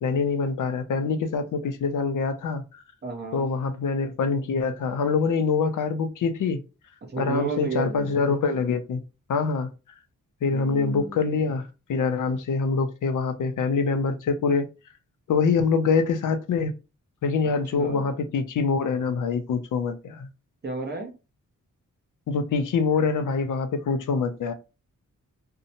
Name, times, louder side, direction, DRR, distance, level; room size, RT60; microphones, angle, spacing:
voice 1, 0.0-2.8 3.3-6.6 7.2-9.0 9.3-9.7 10.4-14.7 15.3-16.7 17.2-20.3 22.3-24.5, left 5 dB, 70° left, 0.5 m, -25 dB
voice 2, 3.0-3.5 7.1-8.1 10.5-11.4 17.7-18.1 20.6-21.1, right 3 dB, 35° right, 0.7 m, -32 dB
2.7 x 2.1 x 2.7 m
wide cardioid pair, 170°, 32 cm